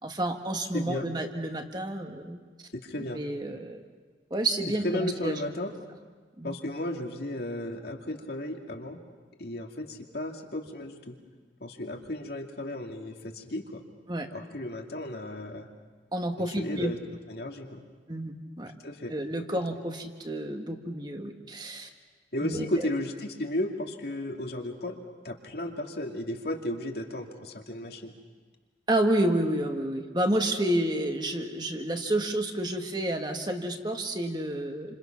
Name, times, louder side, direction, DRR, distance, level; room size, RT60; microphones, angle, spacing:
voice 1, 0.0-2.4 3.1-3.8 4.3-5.4 6.4-6.5 14.1-14.3 16.1-16.9 18.1-18.7 19.1-21.9 22.4-22.9 28.9-35.0, right 1 dB, 25° right, 4 dB, 1.7 m, -30 dB
voice 2, 0.7-1.1 2.7-3.2 4.8-5.7 6.4-9.0 9.4-11.1 11.6-13.8 14.3-15.7 16.3-17.0 17.3-17.8 18.8-19.1 22.3-25.0 25.2-28.1, left 1 dB, 60° left, 2 dB, 2.4 m, -34 dB
29.0 x 27.0 x 6.0 m, 1.4 s
head